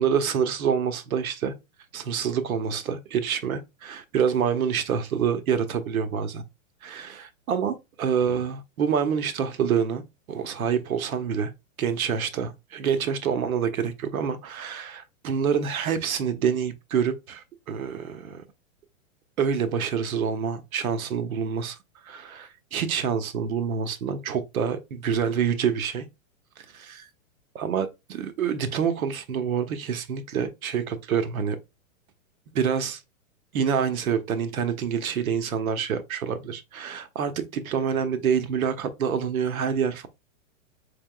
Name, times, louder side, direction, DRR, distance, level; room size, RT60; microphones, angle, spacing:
voice 1, 0.0-1.5 1.9-6.4 6.8-10.0 10.3-11.5 11.8-18.4 19.4-21.8 22.0-26.0 26.6-27.1 27.5-31.6 32.5-33.0 33.5-40.1, right 7 dB, 90° right, 0.9 m, -27 dB
4.2 x 3.5 x 2.3 m
hypercardioid pair, 165°, 41 cm